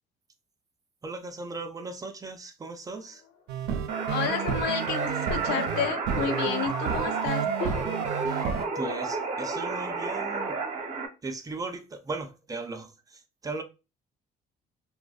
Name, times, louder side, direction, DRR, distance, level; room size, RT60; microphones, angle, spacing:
voice 1, 1.0-3.2 8.7-10.6 11.2-13.6, right 3 dB, 20° right, 0.4 m, -37 dB
sound 1, 3.0-3.6 7.6-8.5, left 3 dB, 55° left, 0.9 m, -40 dB
sound 2, 3.5-8.7, right 7 dB, 85° right, 0.4 m, -32 dB
sound 3, 3.9-11.1, right 4 dB, 50° right, 0.7 m, -31 dB
voice 2, 4.1-7.4, left 7 dB, 85° left, 0.5 m, -30 dB
2.6 x 2.1 x 2.3 m
cardioid pair, 110°, 17 cm